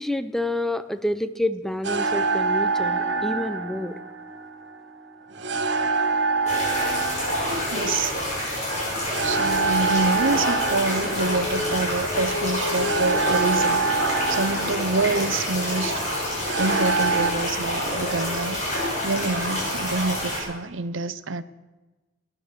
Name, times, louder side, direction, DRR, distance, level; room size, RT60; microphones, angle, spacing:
voice 1, 0.0-4.0, left 1 dB, ahead, 11 dB, 0.6 m, -28 dB
sound 1, 1.8-17.3, right 4 dB, 65° right, 1.4 m, -26 dB
sound 2, 6.5-20.4, left 1 dB, 35° left, 6.8 m, -27 dB
voice 2, 7.7-8.2 9.2-13.8 14.3-16.0 16.6-21.4, right 3 dB, 80° right, 14 dB, 0.8 m, -27 dB
sound 3, 9.0-17.1, left 3 dB, 75° left, 1.9 m, -36 dB
18.0 x 11.0 x 6.7 m, 1.2 s
head